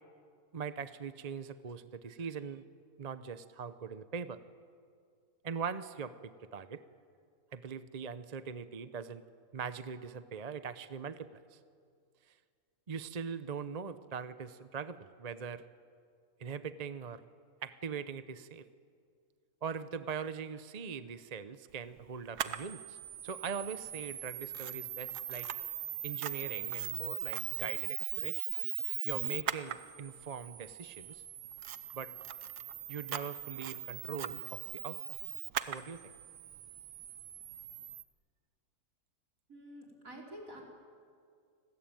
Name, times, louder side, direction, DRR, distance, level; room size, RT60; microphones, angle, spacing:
voice 1, 0.5-2.6 3.0-4.4 5.4-6.8 7.5-9.2 9.5-11.6 12.3-12.4 12.9-15.6 16.4-17.2 17.6-18.7 19.6-23.0 23.2-25.5 26.0-28.4 29.0-31.2 31.9-32.1 32.9-35.0 35.6-36.0, right 6 dB, 40° right, 12 dB, 0.6 m, -41 dB
Camera, 22.4-38.0, right 11 dB, 80° right, 1.4 m, -40 dB
voice 2, 39.5-40.6, equal, 55° right, 0 dB, 5.1 m, -48 dB
29.5 x 20.0 x 9.1 m, 2.2 s
omnidirectional pair, 1.7 m